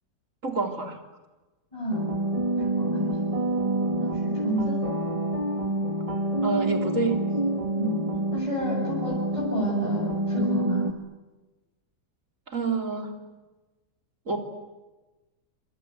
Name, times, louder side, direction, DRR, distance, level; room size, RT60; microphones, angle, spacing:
voice 1, 0.4-1.0 6.4-7.2 12.5-13.1 14.3-14.4, right 4 dB, 55° right, 4 dB, 3.8 m, -27 dB
voice 2, 1.7-2.0 2.5-3.1 3.9-4.8 7.8-8.0 8.3-10.8, equal, 20° left, -4 dB, 7.9 m, -30 dB
sound 1, 1.9-10.9, right 1 dB, 20° right, 1.9 m, -27 dB
27.5 x 26.0 x 8.2 m, 1.1 s
omnidirectional pair, 1.6 m